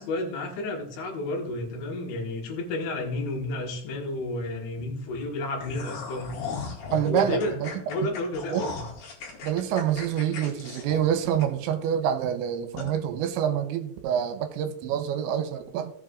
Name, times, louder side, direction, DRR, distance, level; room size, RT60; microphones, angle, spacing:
voice 1, 0.0-6.3 7.1-7.6 7.9-8.8, left 2 dB, 80° left, 1 dB, 3.9 m, -31 dB
sound 1, 5.6-11.9 12.2-12.3 12.8-12.9, left 5 dB, 55° left, 3.4 m, -37 dB
voice 2, 6.9-7.7 8.5-8.6 9.4-15.9, right 9 dB, 85° right, 8 dB, 3.0 m, -27 dB
15.5 x 7.5 x 2.4 m, 0.63 s
omnidirectional pair, 5.4 m